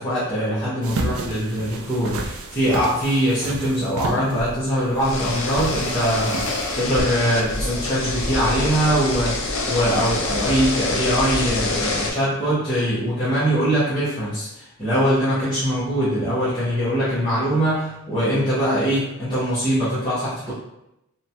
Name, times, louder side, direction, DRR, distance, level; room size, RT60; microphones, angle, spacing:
voice 1, 0.0-20.5, equal, 20° left, -12 dB, 0.7 m, -22 dB
sound 1, 0.8-7.0, right 2 dB, 60° right, 0.3 m, -31 dB
sound 2, 4.9-12.1, left 2 dB, 60° left, 0.5 m, -26 dB
2.9 x 2.2 x 2.7 m, 0.85 s
head